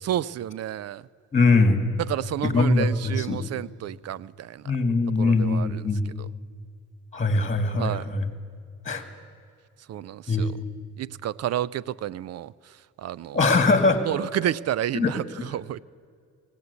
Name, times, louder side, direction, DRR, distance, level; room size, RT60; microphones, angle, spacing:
voice 1, 0.0-1.0 2.0-4.6 5.2-5.8 6.2-6.3 7.7-8.1 9.9-10.5 11.0-12.5 13.0-13.4 14.0-15.8, right 12 dB, 55° right, 22 dB, 0.5 m, -30 dB
voice 2, 1.3-1.9 2.4-3.4 4.7-6.1 7.1-8.3 8.9-9.0 10.3-10.6 13.3-14.0 14.9-15.2, left 3 dB, 25° left, 7 dB, 2.1 m, -22 dB
19.5 x 16.5 x 8.2 m, 2.3 s
cardioid pair, 90°, 30 cm